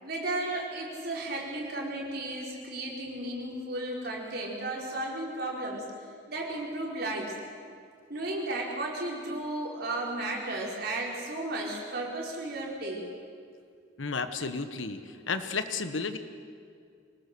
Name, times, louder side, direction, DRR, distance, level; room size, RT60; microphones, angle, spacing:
voice 1, 0.0-5.9 6.3-7.3 8.1-13.0, right 2 dB, 55° right, -2 dB, 4.6 m, -34 dB
voice 2, 14.0-16.2, left 4 dB, 85° left, 9 dB, 1.3 m, -32 dB
24.0 x 19.0 x 6.9 m, 2.2 s
head